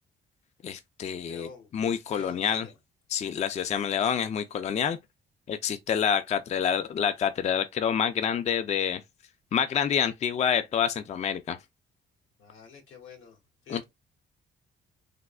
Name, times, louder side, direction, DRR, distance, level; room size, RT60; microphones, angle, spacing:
voice 1, 0.6-2.7 3.1-5.0 5.5-9.0 9.5-11.6 13.7-13.8, left 8 dB, 35° left, 0.4 m, -27 dB
voice 2, 1.2-1.7 2.1-2.7 12.4-13.4 13.6-13.8, left 7 dB, 85° left, 1.3 m, -47 dB
3.4 x 2.0 x 2.3 m
cardioid pair, 90°, 20 cm